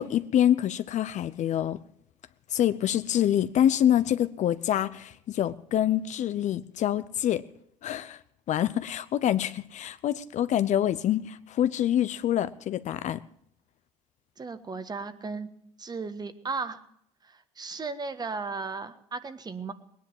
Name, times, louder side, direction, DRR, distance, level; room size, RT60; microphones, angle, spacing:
voice 1, 0.0-1.8 2.5-7.4 7.8-8.2 8.5-13.2, left 11 dB, 50° left, 0.7 m, -26 dB
voice 2, 14.4-15.5 15.8-16.8 17.2-19.7, right 4 dB, 25° right, 1.5 m, -35 dB
19.5 x 10.0 x 7.2 m
hypercardioid pair, 75°, 16 cm